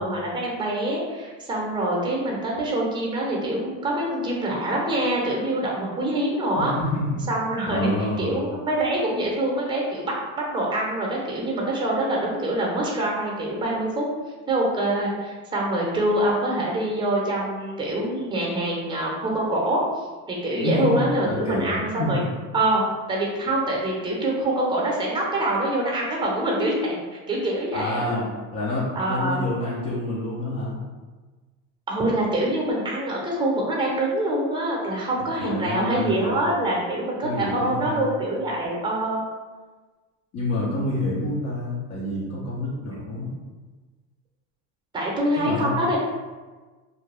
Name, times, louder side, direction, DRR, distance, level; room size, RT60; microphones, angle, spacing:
voice 1, 0.0-6.7 7.3-7.9 8.2-10.1 10.5-14.1 14.5-19.8 20.3-22.2 22.5-28.2 29.0-29.5 31.9-39.2 44.9-46.0, right 1 dB, 10° right, -2 dB, 0.8 m, -25 dB
voice 2, 6.6-7.2 7.7-8.3 20.6-22.3 27.7-28.3 28.5-30.8 35.4-36.3 37.2-38.1 40.3-43.3 45.4-45.9, left 1 dB, 45° left, -7 dB, 0.8 m, -28 dB
2.6 x 2.3 x 3.3 m, 1.3 s
supercardioid pair, 100°, 39 cm